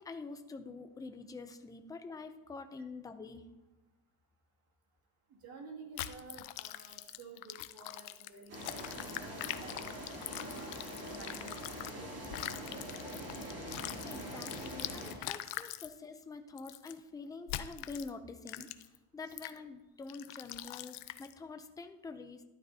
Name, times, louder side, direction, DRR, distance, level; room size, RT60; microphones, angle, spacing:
voice 1, 0.0-3.5 14.0-18.7 19.1-22.4, left 4 dB, 10° left, 7 dB, 0.3 m, -46 dB
voice 2, 5.3-10.7 11.2-12.3 12.6-13.0 19.3-19.4, right 4 dB, 50° right, 0 dB, 2.3 m, -52 dB
sound 1, 6.0-11.9 12.2-15.9 16.6-16.9 17.5-18.1 18.5-19.0 19.4-19.6 20.1-21.3, left 15 dB, 85° left, 0.7 m, -43 dB
sound 2, 8.5-15.1, equal, 30° right, 3.4 m, -44 dB
12.5 x 12.0 x 2.7 m, 1.0 s
cardioid pair, 160°, 46 cm